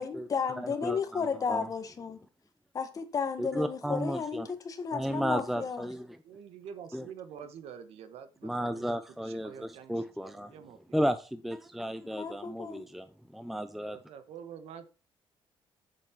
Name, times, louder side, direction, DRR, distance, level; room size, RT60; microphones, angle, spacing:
voice 1, 0.0-2.2 2.7-5.9 12.2-12.8, left 5 dB, 35° left, 1.5 m, -33 dB
voice 2, 3.4-4.5 4.9-6.1 6.9-7.0 8.4-10.5 10.9-13.1 13.3-14.0, equal, ahead, 0.5 m, -33 dB
voice 3, 6.2-8.8 9.2-11.0 12.4-12.6 13.8-14.9, right 8 dB, 85° right, 1.5 m, -47 dB
7.6 x 7.5 x 6.0 m
cardioid pair, 155°, 10 cm